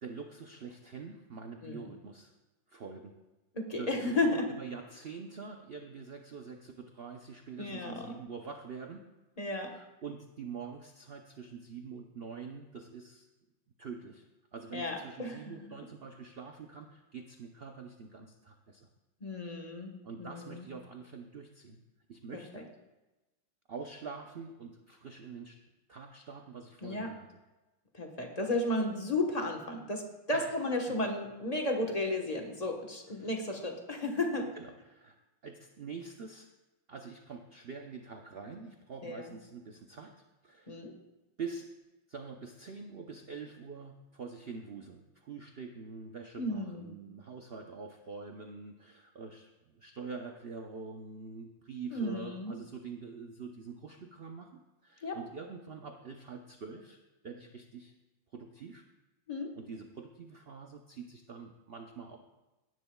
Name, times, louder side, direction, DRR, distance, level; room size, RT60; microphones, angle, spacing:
voice 1, 0.0-2.3 2.7-3.1 3.8-9.0 9.6-13.3 13.8-14.2 14.5-18.9 20.0-21.8 22.1-22.7 23.7-25.6 25.9-27.4 30.3-30.9 33.1-33.4 34.5-35.2 35.4-36.5 36.9-40.1 40.4-40.8 41.4-41.7 42.1-57.0 57.2-57.9 58.3-58.8 59.5-62.2, right 5 dB, 85° right, 4 dB, 0.5 m, -45 dB
voice 2, 3.5-4.4 7.6-8.1 9.4-9.7 14.7-15.7 19.2-19.9 20.2-20.6 22.5-22.6 26.8-27.1 27.9-30.0 30.3-34.5 39.0-39.4 40.7-40.9 46.4-47.0 51.9-52.5 55.0-55.2 59.3-59.5, left 2 dB, 25° left, 2 dB, 1.0 m, -33 dB
17.0 x 11.0 x 2.3 m, 1.1 s
omnidirectional pair, 2.0 m